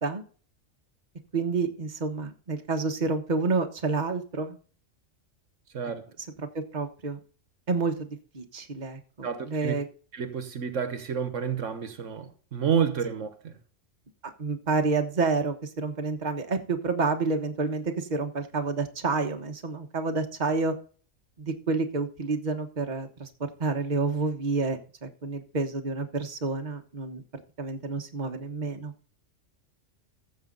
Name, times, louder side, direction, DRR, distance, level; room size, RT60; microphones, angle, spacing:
voice 1, 1.3-4.6 6.4-7.2 7.7-9.8 14.2-20.7 21.4-23.3 23.6-27.2 27.6-28.9, right 4 dB, 35° right, 1.4 m, -29 dB
voice 2, 9.2-9.7 10.1-13.6, right 7 dB, 75° right, 1.5 m, -29 dB
15.0 x 6.3 x 4.0 m
omnidirectional pair, 1.3 m